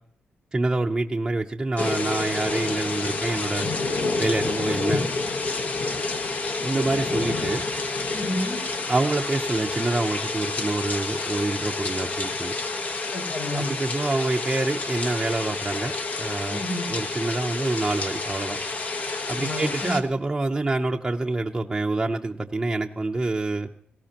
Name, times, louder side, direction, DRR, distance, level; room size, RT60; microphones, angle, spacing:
voice 1, 0.5-3.7 4.2-5.0 6.6-7.6 8.9-12.5 13.5-18.6 19.3-23.7, right 2 dB, 15° right, 1 dB, 0.7 m, -26 dB
sound 1, 1.8-20.0, left 3 dB, 45° left, 1.1 m, -29 dB
voice 2, 8.1-8.7 13.1-13.7 16.5-16.9 19.3-20.0, left 1 dB, 80° left, 2 dB, 5.6 m, -31 dB
18.5 x 17.5 x 2.9 m, 0.62 s
wide cardioid pair, 140°, 4 cm